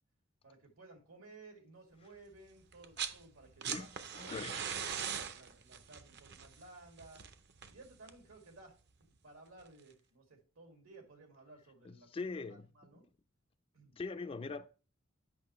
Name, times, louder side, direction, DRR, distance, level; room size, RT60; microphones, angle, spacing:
voice 1, 0.4-4.6 4.9-7.2 7.7-8.8 9.2-13.0 13.7-14.0, right 3 dB, 85° right, 2.2 m, -57 dB
sound 1, 2.7-3.2 3.5-8.3 9.6-9.7, right 8 dB, 55° right, 0.6 m, -41 dB
voice 2, 3.6-4.7 11.8-12.7 13.9-14.7, left 4 dB, 25° left, 0.3 m, -42 dB
8.4 x 5.5 x 3.0 m
head